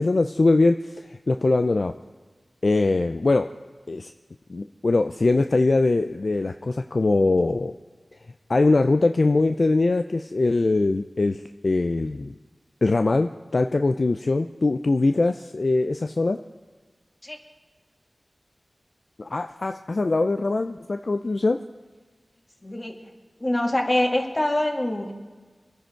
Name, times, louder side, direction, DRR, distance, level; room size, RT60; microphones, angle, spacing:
voice 1, 0.0-1.9 2.6-3.5 3.9-4.1 4.5-7.7 8.5-12.3 12.8-16.4 19.2-21.6, left 3 dB, 65° left, 7 dB, 0.5 m, -22 dB
voice 2, 22.6-23.0 23.4-25.1, left 1 dB, 35° left, 2 dB, 2.2 m, -24 dB
23.0 x 9.8 x 4.5 m, 1.4 s
wide cardioid pair, 45°, 0 cm